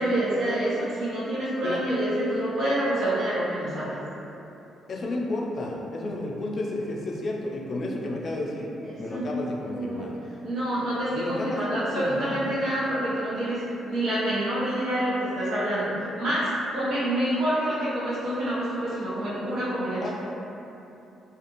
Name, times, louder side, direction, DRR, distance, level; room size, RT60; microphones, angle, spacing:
voice 1, 0.0-4.0 8.8-10.0 10.4-20.1, right 1 dB, 65° right, -10 dB, 0.7 m, -27 dB
voice 2, 4.9-10.1 11.1-12.5 20.0-20.1, left 2 dB, 45° left, -2 dB, 0.4 m, -32 dB
2.5 x 2.3 x 2.9 m, 3.0 s
cardioid pair, 90°, 0 cm